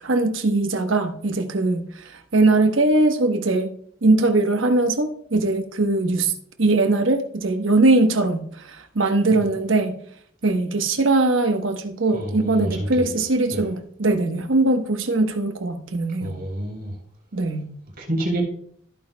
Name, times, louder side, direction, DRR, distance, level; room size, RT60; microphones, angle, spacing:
voice 1, 0.0-3.7 4.0-6.3 6.6-10.0 10.4-16.3 17.3-17.7, right 2 dB, 85° right, 6 dB, 1.1 m, -21 dB
voice 2, 12.1-13.2 13.5-13.7 16.2-16.9 18.0-18.4, right 1 dB, 50° right, -1 dB, 3.9 m, -28 dB
14.5 x 9.0 x 2.3 m, 0.63 s
head